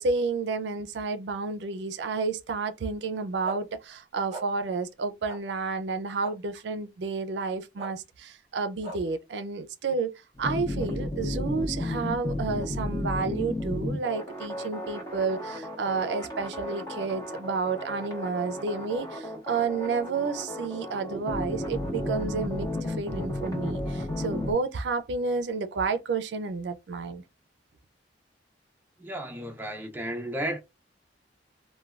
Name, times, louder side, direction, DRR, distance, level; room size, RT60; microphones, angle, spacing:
voice 1, 0.0-10.1 10.4-27.2, right 4 dB, 75° right, 0.4 m, -31 dB
sound 1, 3.4-3.6 4.3-4.4 5.2-5.4 6.2-6.3 7.8-7.9 8.8-9.0, right 2 dB, 35° right, 0.8 m, -38 dB
sound 2, 10.4-24.5, left 1 dB, 20° left, 0.8 m, -33 dB
voice 2, 29.0-30.6, right 1 dB, 10° right, 0.5 m, -33 dB
3.2 x 2.2 x 2.3 m
head